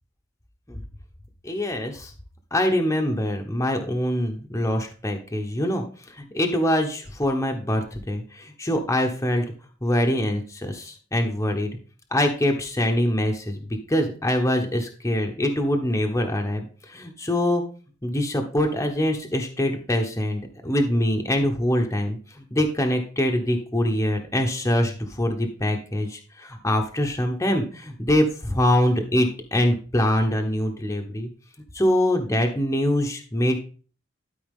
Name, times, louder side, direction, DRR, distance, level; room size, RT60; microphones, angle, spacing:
voice 1, 1.4-2.1 2.5-9.4 9.8-11.7 12.1-17.6 18.0-31.3 31.7-33.6, left 1 dB, 15° left, 3 dB, 0.9 m, -24 dB
12.0 x 4.7 x 3.6 m, 0.39 s
head